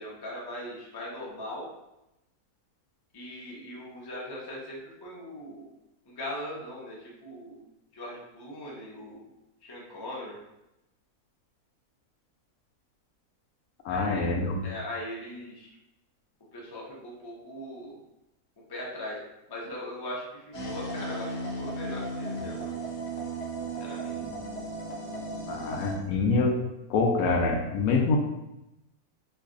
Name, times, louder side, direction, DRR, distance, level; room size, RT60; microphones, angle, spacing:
voice 1, 0.0-1.7 3.1-5.7 6.1-7.7 7.9-9.2 9.6-10.4 13.9-14.2 14.6-15.7 16.5-18.0 18.7-19.2 19.5-22.7 23.8-24.1, left 1 dB, 25° left, -4 dB, 0.5 m, -40 dB
voice 2, 13.8-14.6 25.5-26.6 26.9-28.2, left 3 dB, 75° left, 2 dB, 1.0 m, -25 dB
sound 1, 20.5-25.9, right 2 dB, 55° left, 1.1 m, -35 dB
3.2 x 2.3 x 3.7 m, 0.91 s
omnidirectional pair, 1.6 m